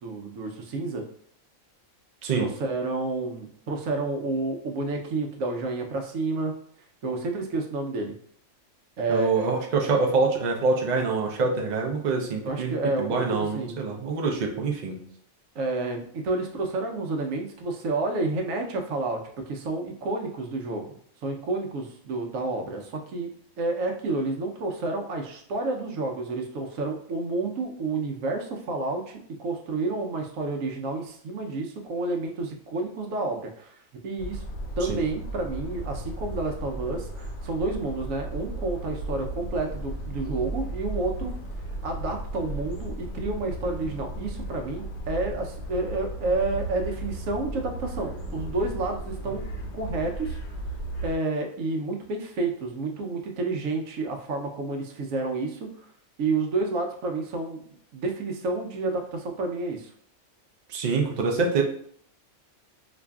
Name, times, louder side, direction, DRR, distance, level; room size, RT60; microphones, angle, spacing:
voice 1, 0.0-1.1 2.3-6.5 7.0-8.1 9.0-9.4 12.4-13.8 15.5-21.0 21.2-23.3 23.6-34.4 34.8-41.3 41.8-49.5 49.7-50.4 51.0-55.9 56.2-57.6 57.9-59.9, right 3 dB, 80° right, 3 dB, 1.1 m, -30 dB
voice 2, 9.1-15.0 34.9-35.0 60.7-61.6, right 4 dB, 50° right, 1 dB, 0.5 m, -25 dB
sound 1, 34.2-51.1, right 1 dB, 65° left, 0.9 m, -35 dB
4.9 x 2.5 x 2.3 m, 0.63 s
omnidirectional pair, 1.4 m